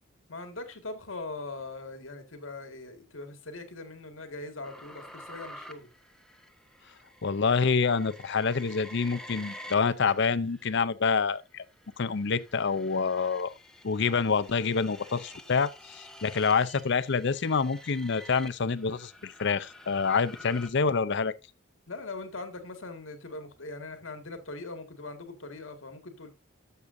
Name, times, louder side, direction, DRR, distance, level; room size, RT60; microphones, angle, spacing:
voice 1, 0.3-5.9 21.9-26.3, left 2 dB, 80° left, 1.9 m, -41 dB
sound 1, 4.6-10.8 11.4-20.7, left 1 dB, 5° left, 1.0 m, -49 dB
voice 2, 7.2-11.6 12.0-13.5 13.8-21.3, left 5 dB, 60° left, 0.6 m, -27 dB
13.0 x 6.9 x 2.6 m
head